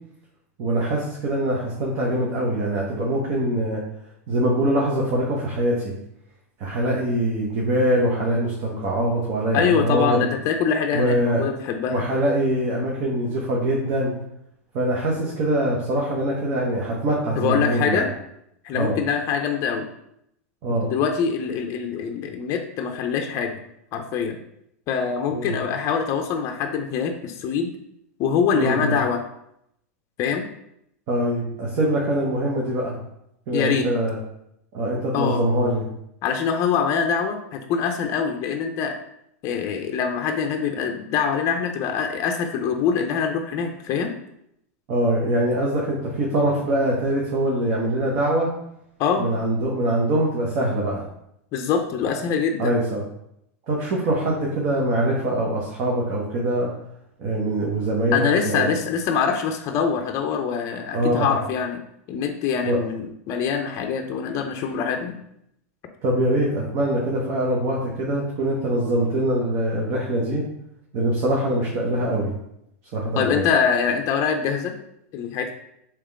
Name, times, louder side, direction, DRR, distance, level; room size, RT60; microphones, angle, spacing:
voice 1, 0.6-3.8 4.3-5.9 6.6-10.2 10.9-11.4 11.9-14.1 14.7-18.1 18.7-19.0 20.6-20.9 25.3-25.6 28.5-29.0 31.1-33.0 33.5-34.2 34.7-35.8 44.9-48.5 49.2-51.0 52.6-53.0 53.7-56.7 57.2-58.8 60.9-61.3 62.6-62.8 66.0-70.4 70.9-72.4 72.9-73.5, right 1 dB, 45° right, -3 dB, 1.0 m, -23 dB
voice 2, 9.5-12.0 17.4-18.1 18.6-19.9 20.8-23.6 23.9-24.4 24.9-27.7 28.2-29.2 30.2-30.5 33.5-33.9 35.1-35.4 36.2-39.0 39.4-44.1 49.0-49.3 51.5-52.7 58.1-61.8 62.1-65.2 73.2-74.7 75.1-75.5, left 6 dB, 40° left, 4 dB, 0.5 m, -24 dB
3.5 x 3.0 x 3.4 m, 0.77 s
supercardioid pair, 125°, 8 cm